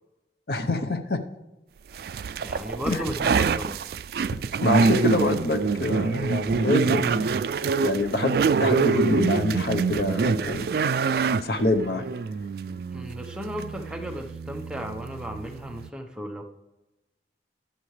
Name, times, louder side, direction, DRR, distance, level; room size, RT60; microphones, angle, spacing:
voice 1, 0.5-1.2 2.9-3.0 4.6-7.3 7.8-10.7 11.4-12.0, left 2 dB, 60° left, 7 dB, 0.9 m, -26 dB
sound 1, 1.9-15.9, right 5 dB, 55° right, 0.3 m, -26 dB
voice 2, 2.4-3.8 12.7-16.4, equal, 5° right, 3 dB, 0.8 m, -35 dB
21.5 x 7.7 x 3.2 m, 1.0 s
head